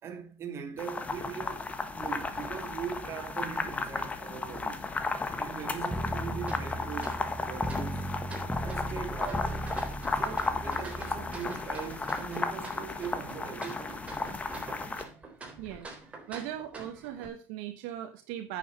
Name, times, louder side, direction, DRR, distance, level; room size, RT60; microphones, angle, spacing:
voice 1, 0.0-4.9 5.3-8.1 8.6-9.6 10.1-13.9, right 7 dB, 40° right, 2.9 m, -40 dB
sound 1, 0.8-15.0, left 3 dB, 20° left, 1.5 m, -34 dB
sound 2, 5.9-11.4, right 1 dB, ahead, 1.0 m, -37 dB
sound 3, 6.4-17.3, right 3 dB, 20° right, 3.8 m, -46 dB
voice 2, 15.6-16.0 16.3-18.6, right 11 dB, 75° right, 1.3 m, -39 dB
9.2 x 7.2 x 5.5 m
supercardioid pair, 110°, 7 cm